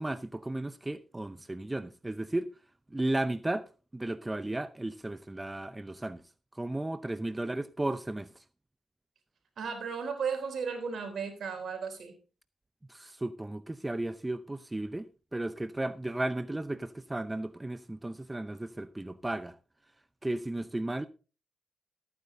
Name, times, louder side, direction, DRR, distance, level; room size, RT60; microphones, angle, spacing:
voice 1, 0.0-2.5 2.9-6.2 6.5-8.4 12.9-19.6 20.2-21.1, right 1 dB, 15° right, 0.6 m, -34 dB
voice 2, 9.6-12.2, right 6 dB, 70° right, 3.6 m, -35 dB
14.0 x 9.4 x 3.7 m
supercardioid pair, 55°, 0 cm